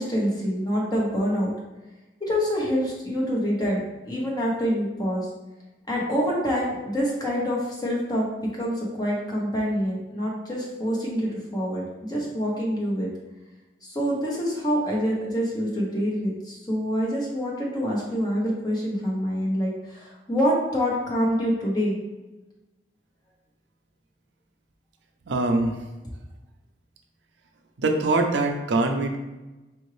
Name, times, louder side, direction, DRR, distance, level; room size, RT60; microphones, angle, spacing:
voice 1, 0.0-1.5 2.2-5.3 5.9-8.3 8.5-13.1 13.8-22.0, equal, 20° left, -3 dB, 0.9 m, -26 dB
voice 2, 25.3-25.8 27.8-29.2, right 2 dB, 75° right, 4 dB, 0.5 m, -23 dB
4.7 x 2.6 x 3.2 m, 1.1 s
head